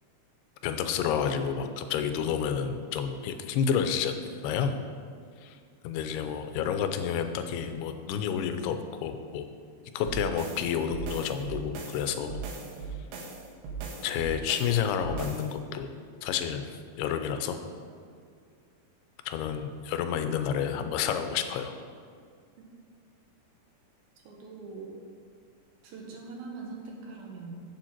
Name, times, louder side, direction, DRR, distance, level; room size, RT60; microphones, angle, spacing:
voice 1, 0.6-4.2 4.4-4.8 5.4-5.6 5.8-8.8 9.0-9.5 9.9-12.4 14.0-15.9 16.2-16.7 17.0-17.6 19.3-21.8, left 8 dB, 90° left, 8 dB, 2.7 m, -30 dB
sound 1, 10.0-15.5, right 5 dB, 85° right, 3.3 m, -39 dB
voice 2, 24.2-24.9 25.8-27.6, right 4 dB, 70° right, 0 dB, 2.8 m, -42 dB
8.9 x 7.7 x 4.5 m, 2.1 s
omnidirectional pair, 4.5 m